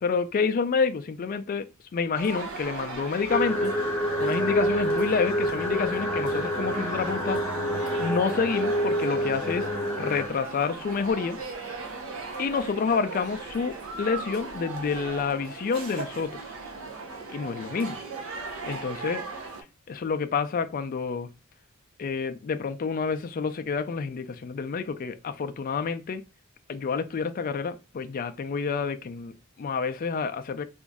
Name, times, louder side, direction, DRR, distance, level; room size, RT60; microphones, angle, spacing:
voice 1, 0.0-3.8 4.2-7.4 8.0-9.7 10.0-11.4 12.4-16.4 17.3-18.0 18.6-19.2 19.9-21.3 22.0-26.2 26.7-30.6, left 5 dB, 40° left, 0.3 m, -28 dB
sound 1, 2.1-19.6, right 3 dB, 65° right, 0.8 m, -38 dB
sound 2, 3.3-10.3, equal, 10° left, 0.7 m, -27 dB
3.0 x 2.6 x 3.5 m
head